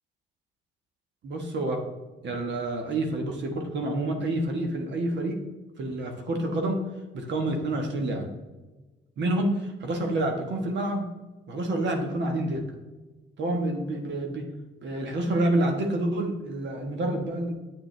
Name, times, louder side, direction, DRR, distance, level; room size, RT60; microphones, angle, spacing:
voice 1, 1.2-1.8 2.2-5.4 5.8-6.8 7.1-8.3 9.2-11.1 11.5-12.6 13.4-14.5 14.8-17.5, right 1 dB, 65° right, 3 dB, 1.4 m, -28 dB
8.5 x 6.5 x 3.3 m, 1.2 s
cardioid pair, 90°, 20 cm